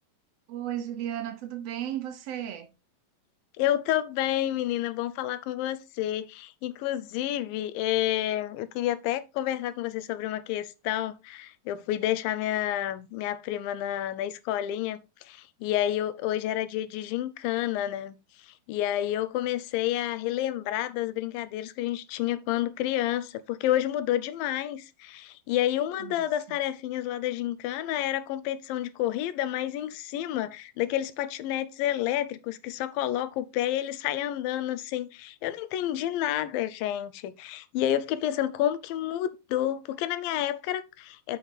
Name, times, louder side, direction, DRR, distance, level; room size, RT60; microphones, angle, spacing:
voice 1, 0.5-2.7 26.0-26.6, right 11 dB, 75° right, 1.5 m, -35 dB
voice 2, 3.6-15.0 15.3-18.2 18.7-41.4, left 12 dB, 85° left, 2.5 m, -29 dB
7.4 x 5.9 x 4.0 m
omnidirectional pair, 4.0 m